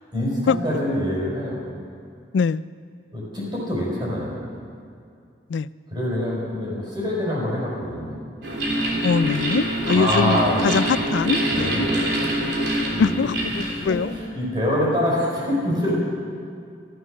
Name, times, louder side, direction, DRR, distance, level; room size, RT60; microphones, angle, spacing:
voice 1, 0.1-1.6 3.1-4.4 5.9-8.2 9.9-10.8 11.5-12.2 12.8-13.2 13.9-16.0, equal, 25° right, -5 dB, 4.9 m, -25 dB
voice 2, 2.3-2.6 5.5-5.7 9.0-11.9 13.0-14.1, left 5 dB, 80° left, 18 dB, 0.3 m, -22 dB
sound 1, 8.4-14.2, right 1 dB, 65° right, 3.2 m, -25 dB
14.0 x 13.0 x 6.5 m, 2.3 s
head